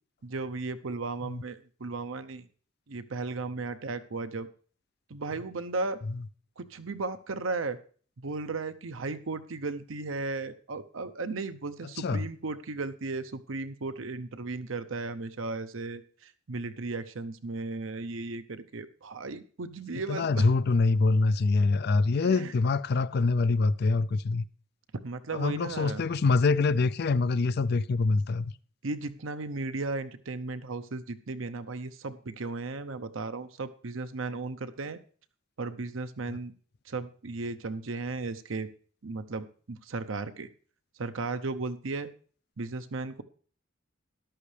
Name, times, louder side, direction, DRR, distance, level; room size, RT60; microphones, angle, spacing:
voice 1, 0.2-2.5 2.9-4.5 5.1-6.0 6.6-7.8 8.2-20.5 22.2-22.5 25.0-26.0 28.8-35.0 35.6-36.5 36.9-38.7 39.0-40.5 41.0-42.1 42.6-43.2, right 3 dB, 75° right, 0.7 m, -35 dB
voice 2, 20.1-24.5 25.3-28.5 36.3-36.4, left 3 dB, 50° left, 0.4 m, -25 dB
13.5 x 11.0 x 3.3 m
head